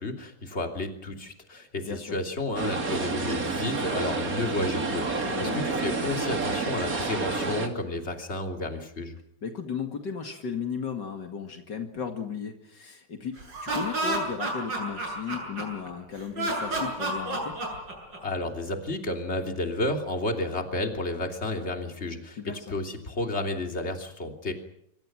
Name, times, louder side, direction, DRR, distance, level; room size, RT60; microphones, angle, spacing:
voice 1, 0.0-9.1 18.2-22.4 22.7-24.5, left 2 dB, 35° left, 4 dB, 3.4 m, -31 dB
sound 1, 2.6-7.7, right 3 dB, 50° right, 3.1 m, -29 dB
voice 2, 5.2-5.6 9.4-17.6 22.4-22.7, left 6 dB, 70° left, 5 dB, 2.8 m, -35 dB
Laughter, 13.4-15.9 16.4-18.4, right 2 dB, 85° right, 8.9 m, -30 dB
25.5 x 25.5 x 6.2 m, 0.72 s
omnidirectional pair, 1.9 m